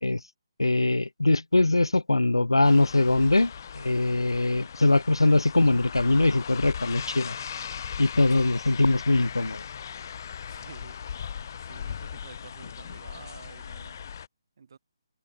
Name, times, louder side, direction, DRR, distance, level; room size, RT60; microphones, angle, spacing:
voice 1, 0.6-7.4 8.0-9.6, left 2 dB, 80° left, 0.5 m, -22 dB
sound 1, 2.6-14.3, left 8 dB, 40° left, 3.0 m, -39 dB
voice 2, 10.5-14.1 14.6-14.8, right 6 dB, 50° right, 4.2 m, -49 dB
figure-of-eight pair, 145°, 3 cm